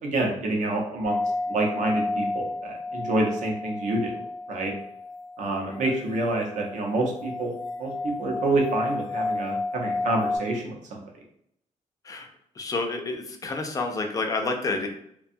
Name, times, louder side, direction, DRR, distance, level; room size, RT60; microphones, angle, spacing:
voice 1, 0.0-1.2 1.5-4.1 4.5-4.7 5.4-7.5 7.8-10.7, right 2 dB, 65° right, 0 dB, 0.7 m, -27 dB
sound 1, 1.0-10.4, left 2 dB, 85° left, 0.7 m, -32 dB
voice 2, 12.6-14.9, left 3 dB, 25° left, 3 dB, 0.4 m, -29 dB
2.5 x 2.3 x 2.6 m, 0.74 s
wide cardioid pair, 155°, 13 cm